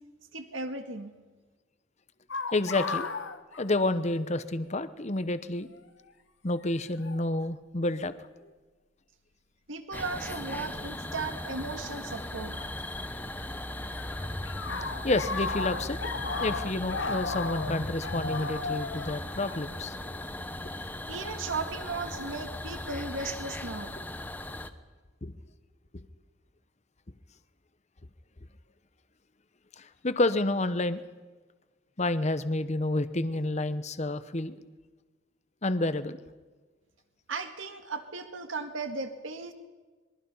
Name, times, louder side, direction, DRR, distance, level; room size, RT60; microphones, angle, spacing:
voice 1, 0.3-1.1 9.7-12.6 21.1-24.0 37.3-39.5, right 3 dB, 70° right, 7 dB, 1.8 m, -36 dB
sound 1, 2.3-4.4 4.7-4.8 5.7-6.0 7.0-7.2 8.0-8.5 11.1-11.2 12.6-13.4 13.7-20.3, left 4 dB, 60° left, 1.2 m, -35 dB
voice 2, 2.5-3.1 3.6-5.7 6.4-8.1 15.0-16.0 16.4-20.0 20.6-20.7 24.0-24.1 25.2-25.3 25.9-26.1 29.8-31.0 32.0-34.5 35.6-36.2, left 2 dB, 35° left, 12 dB, 0.9 m, -29 dB
sound 2, 9.9-24.7, left 1 dB, 10° left, 1.0 m, -38 dB
26.5 x 22.0 x 5.6 m, 1.3 s
head